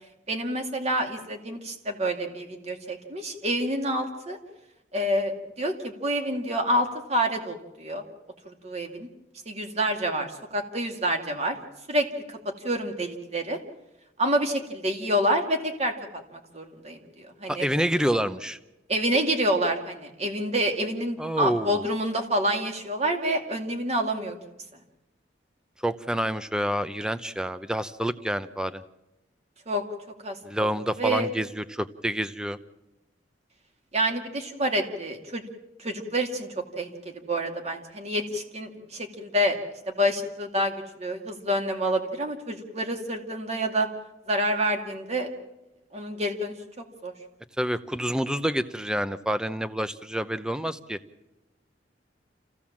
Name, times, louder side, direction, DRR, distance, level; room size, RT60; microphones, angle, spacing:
voice 1, 0.3-4.4 4.9-8.0 8.4-9.1 9.5-11.6 11.9-13.6 14.2-15.9 16.3-17.7 18.9-24.4 29.7-29.8 30.2-30.4 31.0-31.3 33.9-35.4 35.8-39.6 39.9-43.9 44.3-45.3 45.9-47.1, right 1 dB, 35° right, 4 dB, 2.4 m, -28 dB
voice 2, 17.5-18.6 21.2-21.8 25.8-28.8 30.4-32.6 47.6-51.0, equal, 5° right, 12 dB, 0.7 m, -28 dB
27.5 x 15.5 x 7.4 m, 0.98 s
head